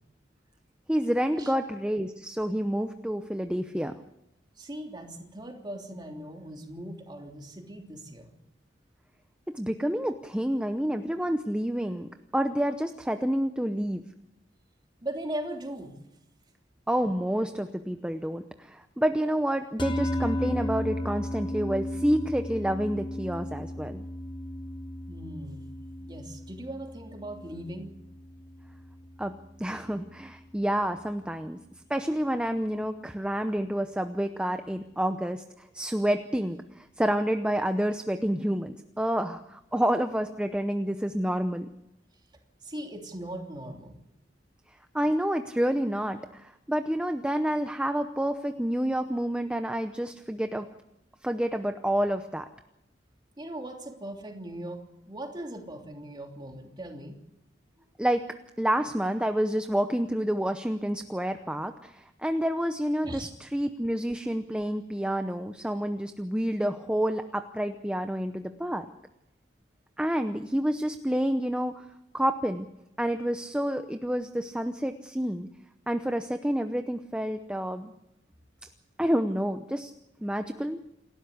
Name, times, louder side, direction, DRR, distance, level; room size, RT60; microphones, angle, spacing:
voice 1, 0.9-3.9 9.5-14.0 16.9-24.0 29.2-29.3 29.6-31.6 31.9-41.7 44.9-50.7 51.2-52.5 58.0-58.2 58.6-68.9 70.0-71.8 72.1-72.7 73.0-75.5 75.9-77.9 78.6-78.7 79.0-79.9 80.2-80.8, equal, 5° right, 7 dB, 0.8 m, -29 dB
voice 2, 4.6-8.3 15.0-16.0 25.1-25.7 26.0-27.9 42.6-44.0 53.4-57.2 63.0-63.3, right 1 dB, 25° right, 2 dB, 3.1 m, -39 dB
sound 1, 19.8-30.2, left 1 dB, 25° left, 1.2 m, -35 dB
28.0 x 13.0 x 8.4 m, 0.87 s
head